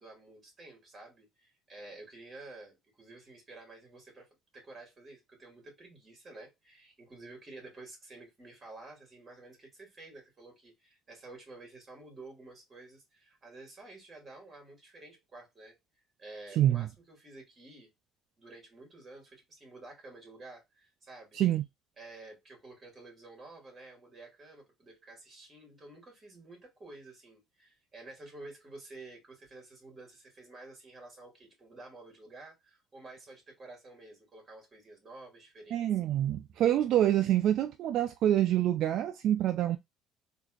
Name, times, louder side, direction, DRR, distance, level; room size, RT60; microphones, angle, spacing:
voice 1, 0.0-15.8 16.2-17.9 18.4-21.4 22.0-35.8, right 2 dB, 30° right, 2.2 m, -51 dB
voice 2, 16.6-16.9 21.3-21.6 35.7-39.8, right 12 dB, 65° right, 0.3 m, -26 dB
3.8 x 2.5 x 2.4 m
cardioid pair, 110°, 0 cm